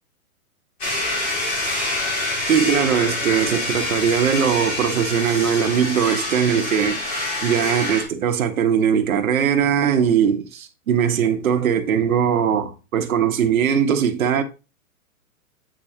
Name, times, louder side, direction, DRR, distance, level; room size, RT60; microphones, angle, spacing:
sound 1, 0.8-8.0, left 2 dB, 15° left, 2.3 m, -26 dB
voice 1, 2.5-14.4, right 8 dB, 65° right, 1.4 m, -20 dB
8.6 x 5.0 x 2.9 m
hypercardioid pair, 160°, 45 cm